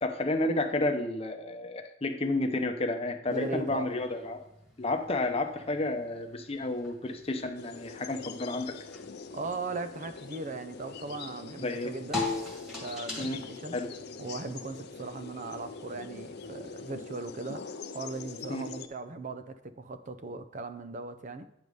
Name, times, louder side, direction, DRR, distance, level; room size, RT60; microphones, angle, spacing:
voice 1, 0.0-4.4 4.8-8.7 11.6-11.9 13.2-13.4 13.7-13.9 18.5-18.6, left 2 dB, 30° left, 5 dB, 0.8 m, -31 dB
sound 1, 3.3-16.9, left 3 dB, ahead, 1.9 m, -43 dB
voice 2, 3.3-3.9 9.3-12.3 12.8-13.8 14.2-21.4, right 3 dB, 40° right, 10 dB, 0.6 m, -38 dB
sound 2, 7.5-18.9, left 5 dB, 60° left, 0.5 m, -44 dB
9.3 x 4.9 x 5.4 m, 0.80 s
head